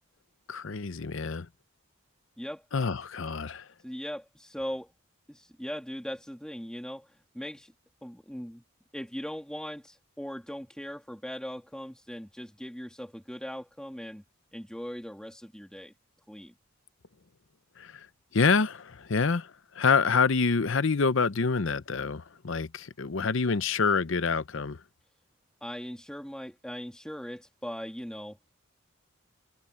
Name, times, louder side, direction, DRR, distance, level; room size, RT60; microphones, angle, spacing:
voice 1, 0.5-1.5 2.7-3.7 17.8-18.1 18.3-24.8, left 5 dB, 60° left, 0.7 m, -27 dB
voice 2, 3.8-4.9 5.3-7.7 8.0-8.6 8.9-14.2 14.5-15.9 16.3-16.5 25.6-28.4, equal, 5° left, 2.2 m, -39 dB
open air
head